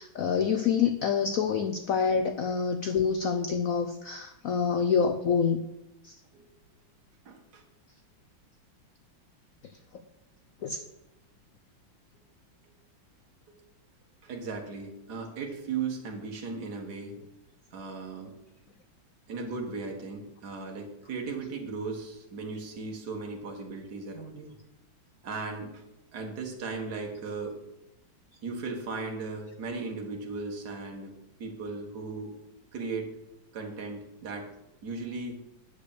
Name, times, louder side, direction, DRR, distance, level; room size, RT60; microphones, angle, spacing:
voice 1, 0.0-5.6 6.0-6.2 10.6-10.8, left 6 dB, 75° left, 7 dB, 0.7 m, -27 dB
voice 2, 7.3-7.6 14.2-17.2 17.7-18.3 19.3-24.6 25.2-25.8 26.1-27.6 28.4-32.4 32.7-33.1 33.5-34.5 34.8-35.4, right 4 dB, 55° right, 1 dB, 2.1 m, -37 dB
8.5 x 6.6 x 6.8 m, 0.88 s
omnidirectional pair, 2.2 m